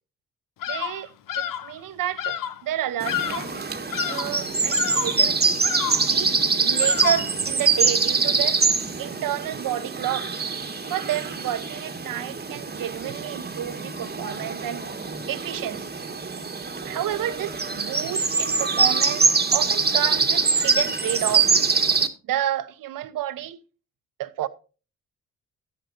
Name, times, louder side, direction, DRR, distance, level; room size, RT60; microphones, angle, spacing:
Bird vocalization bird call bird song, 0.6-1.7 2.2-2.6 3.0-3.6 3.9-4.4 4.7-5.2 5.6-6.1 6.8-7.3, left 11 dB, 65° left, 0.9 m, -30 dB
voice 1, 0.7-3.6 4.1-5.6 6.1-8.6 9.0-10.3 10.9-14.8 15.3-15.9 16.8-19.3 19.5-21.6 22.3-23.6 24.2-24.5, right 12 dB, 65° right, 1.0 m, -30 dB
sound 1, 3.0-22.1, right 4 dB, 25° right, 1.4 m, -24 dB
12.5 x 10.5 x 2.7 m
hypercardioid pair, 50°, 36 cm